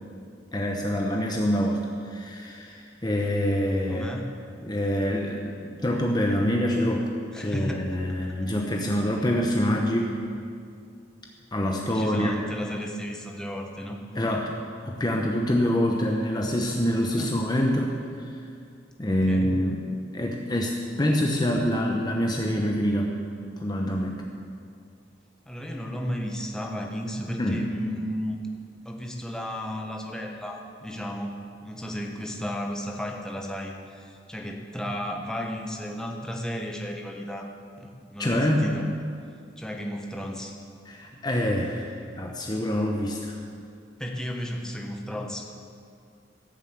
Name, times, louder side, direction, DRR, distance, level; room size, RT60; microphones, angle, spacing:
voice 1, 0.5-4.1 4.6-7.1 7.4-10.2 11.5-12.4 14.2-14.5 14.8-18.3 19.0-23.1 23.6-24.2 27.4-27.6 38.2-38.8 40.9-41.8 42.2-43.3, equal, 20° left, 0 dB, 0.9 m, -26 dB
voice 2, 3.9-4.3 7.3-7.9 8.2-8.3 11.9-14.0 15.0-15.1 17.2-17.4 19.1-19.5 25.5-28.4 28.8-37.5 37.8-38.9 39.6-40.6 44.0-45.5, equal, 5° left, 1 dB, 1.1 m, -34 dB
15.0 x 7.1 x 8.0 m, 2.4 s
head